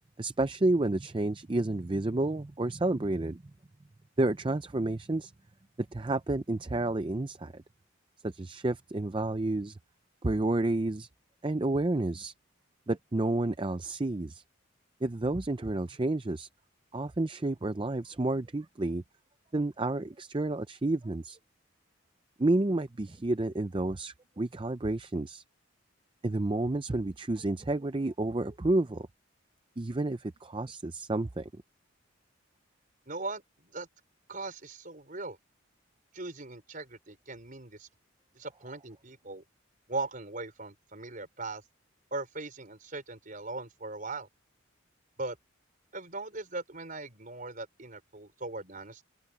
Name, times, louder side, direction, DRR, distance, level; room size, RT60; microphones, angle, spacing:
voice 1, 0.2-3.4 4.2-5.3 5.9-7.6 8.2-9.8 10.2-11.1 11.4-12.3 12.9-14.4 15.0-16.5 16.9-19.0 19.5-21.4 22.4-25.4 26.2-29.1 29.8-31.5, right 2 dB, 25° right, 0.5 m, -30 dB
voice 2, 33.1-33.9 34.3-35.4 36.1-37.9 38.3-39.4 39.9-41.6 42.1-44.3 45.2-45.4 45.9-49.0, right 3 dB, 40° right, 5.0 m, -39 dB
open air
head